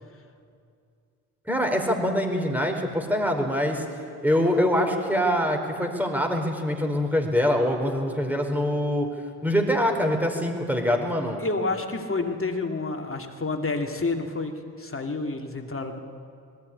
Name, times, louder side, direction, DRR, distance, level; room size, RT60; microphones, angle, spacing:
voice 1, 1.5-3.8 4.2-9.1 9.4-11.4, equal, 5° right, 3 dB, 4.3 m, -24 dB
voice 2, 11.4-14.5 14.8-16.0, left 3 dB, 30° left, 3 dB, 2.6 m, -29 dB
19.0 x 15.5 x 9.9 m, 2.3 s
supercardioid pair, 45°, 40 cm